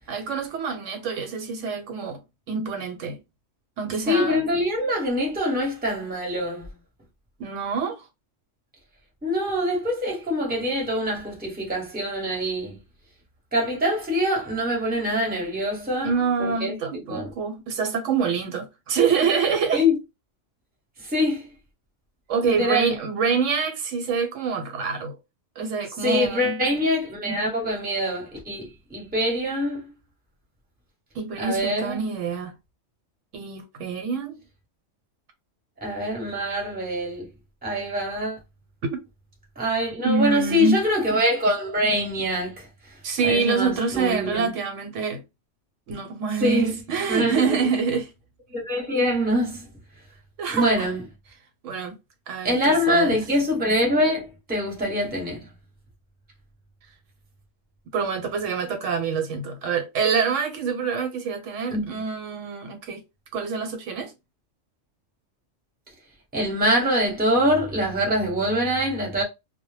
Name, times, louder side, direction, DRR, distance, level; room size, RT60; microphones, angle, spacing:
voice 1, 0.1-2.2 2.5-3.2 3.8-4.4 7.4-8.1 16.0-19.8 22.3-25.2 25.6-26.6 31.1-32.5 33.3-34.4 38.9-39.0 40.0-40.8 43.0-45.2 45.9-48.1 50.4-50.9 51.6-51.9 52.3-52.6 52.9-53.2 57.9-63.0 63.3-64.1, right 5 dB, 75° right, 1.0 m, -26 dB
voice 2, 4.1-6.7 9.2-12.8 13.5-16.1 16.4-16.8 17.1-17.3 19.7-19.9 21.0-21.4 22.4-23.0 26.0-29.9 31.4-32.0 35.8-37.3 37.6-38.4 39.6-42.7 43.2-44.5 46.4-46.8 47.1-47.7 48.5-49.7 50.5-51.0 52.4-55.5 61.7-62.0 66.3-69.2, equal, 10° right, 0.7 m, -24 dB
2.1 x 2.0 x 3.1 m
omnidirectional pair, 1.3 m